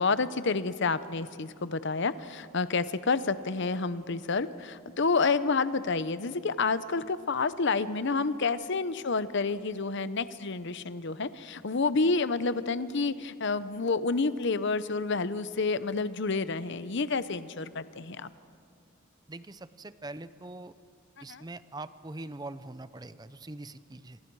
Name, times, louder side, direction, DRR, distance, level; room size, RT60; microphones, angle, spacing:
voice 1, 0.0-18.3 21.2-21.4, left 4 dB, 55° left, 14 dB, 0.8 m, -29 dB
voice 2, 19.3-20.7 21.2-24.2, right 2 dB, 20° right, 14 dB, 0.6 m, -43 dB
28.0 x 25.5 x 4.8 m, 2.4 s
head